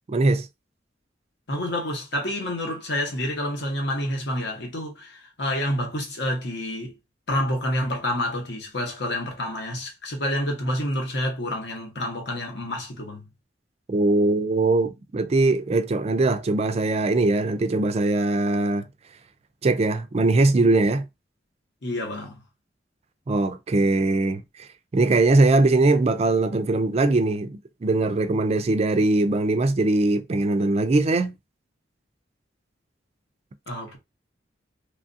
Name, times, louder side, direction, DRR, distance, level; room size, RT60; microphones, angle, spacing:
voice 1, 0.1-0.5 13.9-18.8 19.6-21.0 23.3-24.7 24.9-31.4, right 2 dB, 35° right, 0.4 m, -21 dB
voice 2, 1.5-7.0 7.3-13.3 21.8-22.4 33.7-34.0, left 1 dB, 65° left, 1.0 m, -28 dB
3.1 x 2.4 x 2.6 m
head